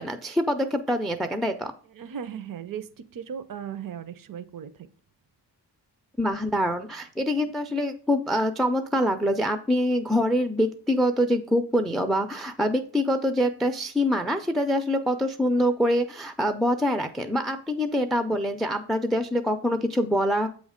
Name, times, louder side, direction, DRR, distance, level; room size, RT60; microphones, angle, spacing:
voice 1, 0.0-1.7 6.2-20.5, equal, ahead, 8 dB, 0.3 m, -25 dB
voice 2, 1.9-4.7, right 8 dB, 55° right, 14 dB, 0.5 m, -37 dB
7.7 x 3.2 x 5.0 m, 0.41 s
wide cardioid pair, 145°, 42 cm